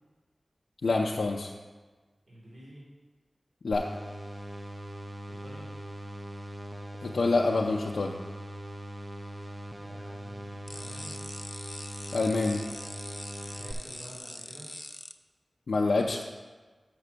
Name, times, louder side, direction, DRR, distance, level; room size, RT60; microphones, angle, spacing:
voice 1, 0.8-1.5 3.6-3.9 7.0-8.1 12.1-12.6 15.7-16.2, left 3 dB, 85° left, 0 dB, 0.5 m, -26 dB
voice 2, 2.3-2.8 5.3-5.7 9.7-11.2 13.6-14.7, right 1 dB, 70° right, -8 dB, 2.5 m, -49 dB
sound 1, 3.7-13.7, right 1 dB, 20° right, 0.6 m, -41 dB
sound 2, 10.7-15.1, left 1 dB, 15° left, 0.4 m, -43 dB
6.1 x 5.9 x 6.6 m, 1.4 s
wide cardioid pair, 95°, 0 cm